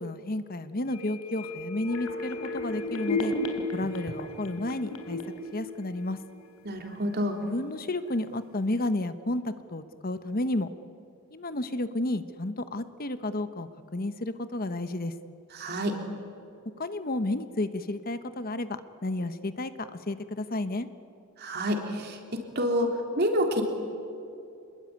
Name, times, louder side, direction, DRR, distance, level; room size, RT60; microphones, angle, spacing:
voice 1, 0.0-3.3 3.7-5.2 5.5-6.2 7.4-10.7 11.3-15.1 16.8-20.9, left 2 dB, 45° left, 11 dB, 1.0 m, -32 dB
sound 1, 0.9-6.6 6.9-7.0, left 2 dB, 90° left, 3.4 m, -34 dB
voice 2, 6.6-7.4 15.5-15.9 21.4-23.6, equal, 50° right, 2 dB, 3.7 m, -28 dB
27.0 x 21.5 x 9.5 m, 2.6 s
head